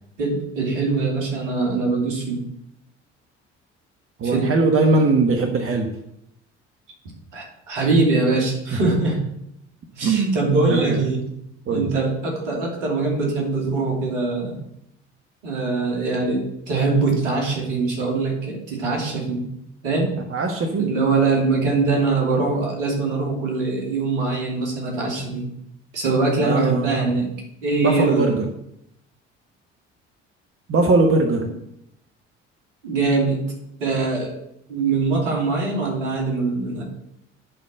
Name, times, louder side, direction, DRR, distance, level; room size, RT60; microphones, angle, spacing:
voice 1, 0.2-2.4 4.2-4.5 7.3-9.3 9.9-11.2 11.7-14.6 15.4-19.4 19.8-20.2 20.8-25.5 25.9-27.3 27.6-28.4 30.7-30.8 31.4-31.5 32.8-33.4 33.8-34.4 34.7-36.8, right 3 dB, 70° right, 0 dB, 2.8 m, -22 dB
voice 2, 4.2-5.9 8.7-8.8 10.0-10.4 10.7-11.0 11.7-11.9 20.3-20.9 26.4-27.1 27.8-28.5 30.7-31.5, right 3 dB, 35° right, 4 dB, 1.4 m, -20 dB
11.0 x 4.3 x 7.6 m, 0.78 s
figure-of-eight pair, 50°, 36 cm